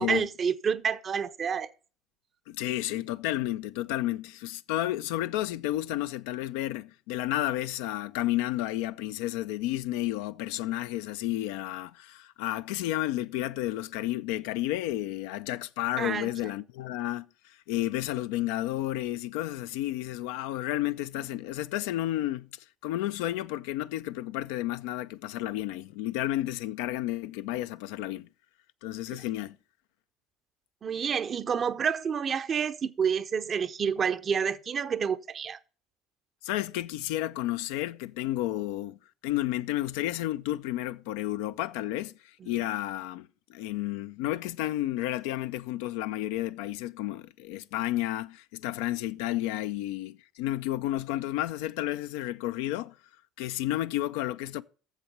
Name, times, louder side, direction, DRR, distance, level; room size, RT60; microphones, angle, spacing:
voice 1, 0.0-1.7 16.0-16.5 30.8-35.6 42.4-42.5, right 7 dB, 40° right, 0.6 m, -29 dB
voice 2, 2.5-17.3 17.7-22.5 22.8-28.3 28.8-29.6 36.4-39.0 39.2-52.9 53.4-54.6, left 15 dB, 75° left, 0.4 m, -31 dB
7.2 x 7.1 x 6.7 m
hypercardioid pair, 70°, 0 cm